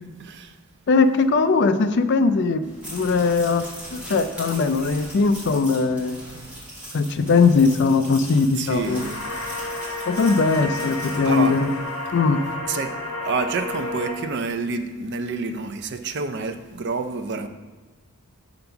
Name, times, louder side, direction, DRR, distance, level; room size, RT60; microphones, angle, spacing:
voice 1, 0.2-0.5 8.6-9.2 11.2-11.5 12.7-12.9 13.2-17.5, right 4 dB, 50° right, 8 dB, 0.5 m, -28 dB
voice 2, 0.9-2.7 2.9-3.6 3.9-6.2 6.9-9.0 10.1-11.7 12.1-12.4, left 4 dB, 50° left, 10 dB, 0.4 m, -20 dB
sound 1, 2.6-12.2, equal, 5° right, 2.2 m, -40 dB
sound 2, 8.8-14.1, left 2 dB, 70° left, 1.5 m, -31 dB
6.8 x 3.9 x 5.7 m, 1.3 s
head